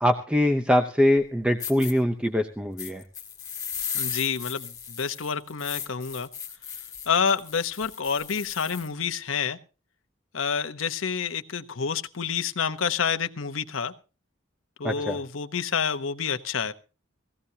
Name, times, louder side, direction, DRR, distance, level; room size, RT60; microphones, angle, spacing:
voice 1, 0.0-3.0 14.8-15.2, left 1 dB, 5° right, 6 dB, 0.7 m, -23 dB
sound 1, 1.2-1.3 1.6-1.9 2.8-8.9, left 7 dB, 20° left, 1.9 m, -36 dB
voice 2, 3.9-6.3 7.1-9.6 10.3-13.9 14.8-16.7, left 6 dB, 90° left, 8 dB, 0.9 m, -28 dB
17.5 x 16.0 x 2.8 m, 0.33 s
head